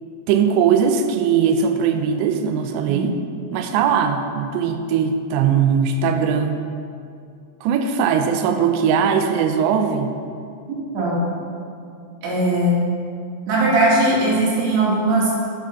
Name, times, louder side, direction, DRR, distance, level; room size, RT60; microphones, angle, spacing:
voice 1, 0.3-3.2 3.5-6.6 7.6-10.1, right 7 dB, 90° right, 6 dB, 2.5 m, -19 dB
voice 2, 10.9-11.3 12.2-12.8 13.5-15.3, right 1 dB, 70° right, -6 dB, 4.2 m, -19 dB
8.1 x 7.3 x 5.6 m, 2.5 s
omnidirectional pair, 5.7 m